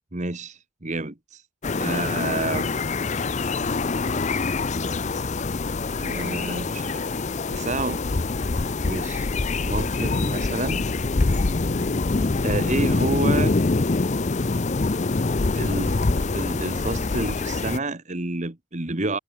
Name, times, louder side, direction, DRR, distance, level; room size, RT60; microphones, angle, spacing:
voice 1, 0.1-1.4 1.8-2.8 5.9-7.1 7.5-8.0 8.8-9.3 9.7-10.8 12.4-13.6 15.5-16.0 16.3-19.2, right 2 dB, 35° right, 1.5 m, -29 dB
sound 1, 1.6-17.8, left 3 dB, 35° left, 0.6 m, -25 dB
head